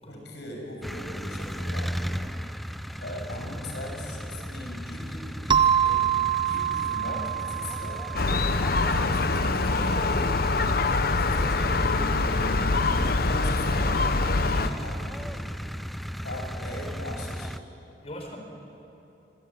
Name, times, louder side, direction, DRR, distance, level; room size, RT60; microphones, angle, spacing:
voice 1, 0.1-2.2 3.0-6.1 6.4-8.1 8.7-10.6 10.9-12.4 12.8-14.3 14.8-15.4 16.2-17.5, left 1 dB, 75° left, 1 dB, 7.0 m, -40 dB
sound 1, 0.8-17.6, equal, ahead, 0.6 m, -36 dB
sound 2, 5.5-9.9, right 9 dB, 25° right, 0.9 m, -27 dB
Gull seagull, 8.1-14.7, left 3 dB, 55° left, 1.0 m, -24 dB
voice 2, 14.5-14.9 18.0-18.4, equal, 35° left, 2 dB, 4.5 m, -41 dB
26.5 x 23.5 x 9.1 m, 2.9 s
head